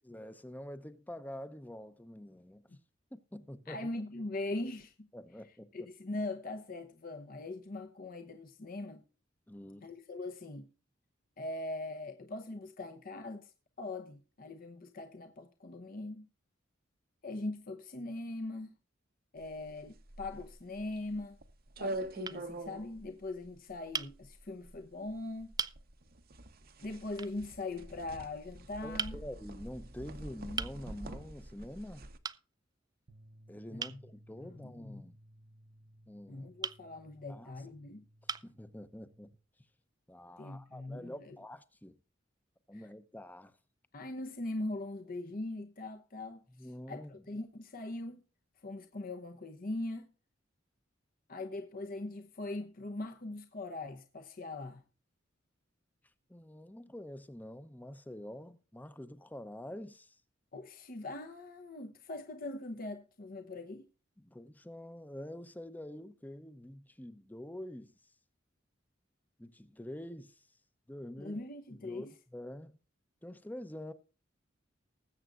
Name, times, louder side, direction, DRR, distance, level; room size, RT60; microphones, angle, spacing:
voice 1, 0.0-2.7 3.1-3.9 5.1-5.9 9.5-9.9 28.8-32.1 33.5-35.1 36.1-36.5 37.3-37.6 38.4-39.3 40.1-42.0 42.7-43.5 46.5-47.1 56.3-60.1 64.2-67.9 69.4-70.4 70.9-71.4 71.7-72.8 73.2-73.9, left 1 dB, 10° left, 0.7 m, -46 dB
voice 2, 3.7-5.1 5.7-9.0 9.8-10.7 11.4-13.5 13.8-16.3 17.2-18.7 19.3-21.4 21.8-25.5 26.8-29.2 33.7-34.0 34.4-35.0 36.3-38.0 40.4-41.4 42.7-42.8 43.9-48.2 48.6-50.1 51.3-54.8 60.5-63.9 71.2-72.1, left 2 dB, 45° left, 0.9 m, -41 dB
sound 1, 19.4-32.2, right 1 dB, 50° right, 1.0 m, -45 dB
sound 2, 20.5-21.1 21.8-22.0 22.2-22.4 23.9-24.1 25.0-25.1 25.6-25.8 27.2-27.4 29.0-29.2 30.6-30.8 32.2-32.4 33.8-34.0 36.6-36.8 37.7-37.8 38.3-38.6, right 6 dB, 20° right, 0.4 m, -38 dB
sound 3, 33.1-39.3, right 1 dB, 75° right, 1.0 m, -60 dB
20.0 x 8.0 x 2.5 m
head